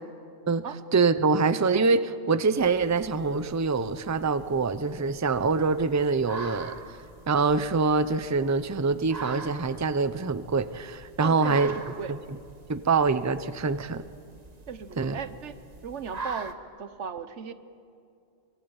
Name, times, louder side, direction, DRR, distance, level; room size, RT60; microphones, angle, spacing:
voice 1, 0.9-7.0 7.3-11.7 12.1-12.4 12.7-14.0 15.0-15.2, right 4 dB, 20° right, 13 dB, 0.6 m, -25 dB
sound 1, 2.6-16.5, right 3 dB, 35° right, 1.3 m, -44 dB
voice 2, 11.2-11.7 12.0-12.1 14.7-15.5 15.8-17.5, right 6 dB, 90° right, 11 dB, 1.4 m, -36 dB
23.5 x 23.5 x 8.9 m, 2.5 s
omnidirectional pair, 1.2 m